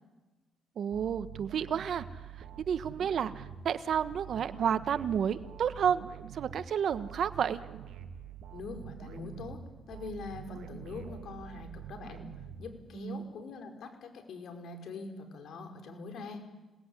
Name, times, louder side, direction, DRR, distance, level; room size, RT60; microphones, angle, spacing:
voice 1, 0.8-6.0 6.3-7.6 12.9-13.3, right 8 dB, 60° right, 12 dB, 1.3 m, -31 dB
sound 1, 0.9-13.2, right 9 dB, 80° right, 2.3 m, -46 dB
voice 2, 8.5-9.6 9.9-12.2 12.6-16.4, left 4 dB, 65° left, 5 dB, 5.3 m, -43 dB
26.5 x 19.5 x 9.9 m, 1.2 s
cardioid pair, 90°, 0 cm